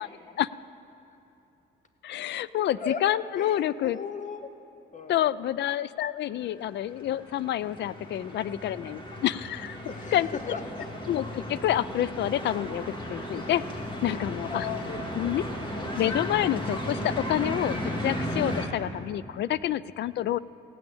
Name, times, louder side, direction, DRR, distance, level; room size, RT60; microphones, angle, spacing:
voice 1, 2.0-4.0 5.1-9.8 10.1-10.3 11.1-13.6 14.0-14.6 15.2-15.4 16.0-20.4, left 12 dB, 60° left, 19 dB, 0.4 m, -28 dB
voice 2, 3.3-4.5 4.9-5.2 9.9-10.9 14.0-16.0, left 5 dB, 40° left, 7 dB, 1.1 m, -38 dB
sound 1, 6.6-18.7, equal, 25° left, 1.9 m, -35 dB
16.5 x 6.1 x 8.7 m, 2.9 s
cardioid pair, 90°, 20 cm